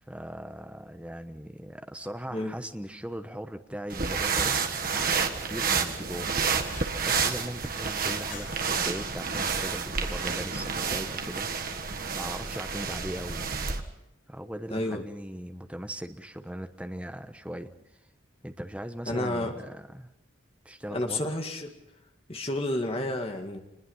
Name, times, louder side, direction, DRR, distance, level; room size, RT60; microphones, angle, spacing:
voice 1, 0.1-4.6 4.9-6.3 7.0-11.5 12.1-13.4 14.3-17.7 18.4-20.1 20.6-21.3, equal, 5° right, 7 dB, 1.0 m, -39 dB
sound 1, 3.9-13.8, right 5 dB, 45° right, 1.6 m, -30 dB
sound 2, 4.0-10.1, left 4 dB, 45° left, 5.7 m, -52 dB
voice 2, 14.7-15.0 19.1-19.5 20.9-21.7 22.3-23.6, left 1 dB, 30° left, 4 dB, 2.1 m, -30 dB
26.0 x 21.0 x 5.6 m, 0.86 s
head